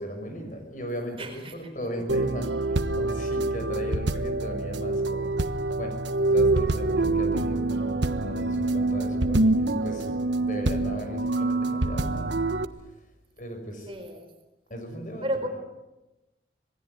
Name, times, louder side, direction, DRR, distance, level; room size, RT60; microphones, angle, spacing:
voice 1, 0.0-1.3 1.5-2.5 2.9-5.3 5.8-12.3 13.4-13.8 14.7-15.2, equal, 45° left, 5 dB, 6.4 m, -36 dB
voice 2, 1.2-1.7 13.9-14.3 15.2-15.5, right 1 dB, 30° right, 6 dB, 4.2 m, -32 dB
sound 1, 2.1-12.7, right 2 dB, 85° right, 1.3 m, -26 dB
27.0 x 21.0 x 9.6 m, 1.0 s
head